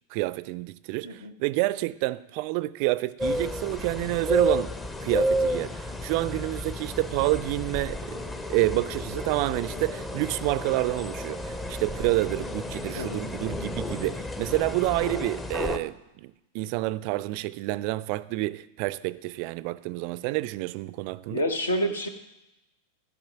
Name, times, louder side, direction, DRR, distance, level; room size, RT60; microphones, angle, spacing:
voice 1, 0.1-4.7 5.0-8.2 8.5-21.4, right 19 dB, 45° right, 0.3 m, -28 dB
sound 1, 3.2-15.8, left 1 dB, 15° left, 0.6 m, -32 dB
voice 2, 12.9-13.3 21.3-22.1, equal, 75° left, 1.0 m, -28 dB
13.5 x 5.2 x 5.9 m
figure-of-eight pair, 90°, 0 cm